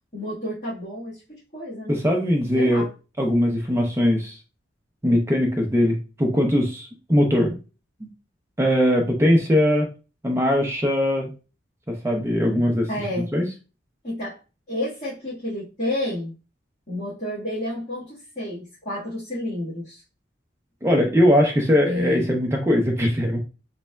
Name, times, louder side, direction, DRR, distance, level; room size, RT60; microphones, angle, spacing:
voice 1, 0.1-2.0 2.5-2.9 12.9-13.3 14.0-14.4 14.7-16.3 16.9-20.0 21.8-22.3, left 1 dB, 40° left, -11 dB, 1.5 m, -30 dB
voice 2, 1.9-2.9 3.2-4.4 5.0-7.6 8.6-9.9 10.2-11.3 11.9-12.9 13.3-13.5 20.8-23.4, equal, 15° right, 2 dB, 0.5 m, -20 dB
3.9 x 3.2 x 2.2 m, 0.32 s
head